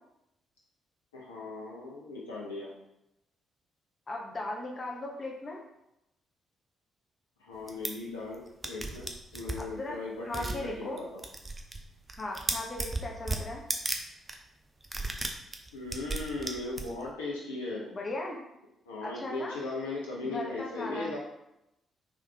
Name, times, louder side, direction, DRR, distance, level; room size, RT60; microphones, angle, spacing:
voice 1, 1.1-2.7 7.4-11.2 15.7-17.9 18.9-21.2, left 2 dB, 80° left, -5 dB, 0.5 m, -38 dB
voice 2, 4.1-5.6 9.6-10.0 10.2-11.0 12.2-13.6 17.9-18.4 19.0-19.6 20.3-21.1, left 2 dB, 35° left, -1 dB, 0.8 m, -37 dB
sound 1, 7.7-7.9 8.3-8.4 8.6-9.6 10.3-10.6 11.0-11.8 12.1-14.0 14.3-14.4 14.8-17.1, right 2 dB, 25° right, 0.5 m, -34 dB
3.3 x 3.1 x 3.7 m, 0.86 s
figure-of-eight pair, 40°, 0 cm